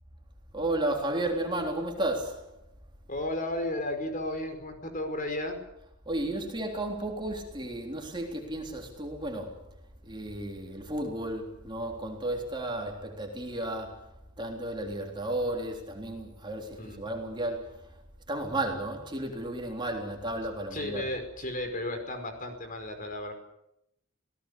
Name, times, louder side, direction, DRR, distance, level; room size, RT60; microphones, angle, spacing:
voice 1, 0.5-2.6 6.1-9.7 10.0-18.0 18.3-21.1, right 1 dB, 20° right, 3.6 m, -33 dB
voice 2, 3.1-5.6 16.8-17.0 20.7-23.3, left 1 dB, 40° left, 5.2 m, -34 dB
27.0 x 18.5 x 8.4 m
head